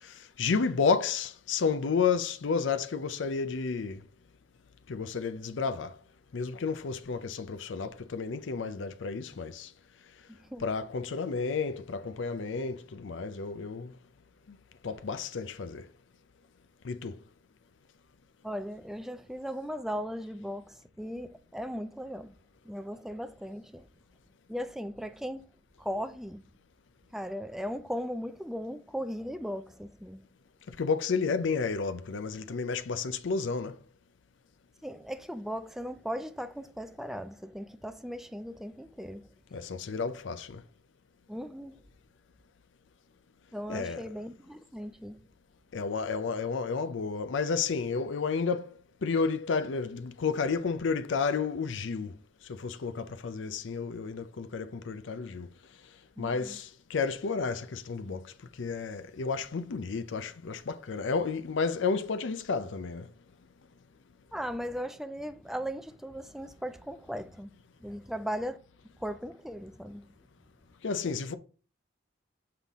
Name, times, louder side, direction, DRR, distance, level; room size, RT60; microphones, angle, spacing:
voice 1, 0.0-4.0 4.9-5.9 6.3-9.7 10.6-13.9 14.8-15.9 16.8-17.2 30.8-33.8 39.5-40.6 43.7-44.0 45.7-48.7 49.0-52.1 52.5-55.5 56.2-63.1 70.8-71.3, left 5 dB, 85° left, 0.5 m, -31 dB
voice 2, 10.3-10.6 18.4-22.3 22.6-23.9 24.5-25.5 25.8-26.4 27.1-30.2 34.8-39.3 41.3-41.8 43.5-45.2 56.2-56.6 64.3-67.5 67.8-68.6 69.0-70.1, equal, ahead, 0.4 m, -37 dB
5.8 x 5.6 x 3.5 m
head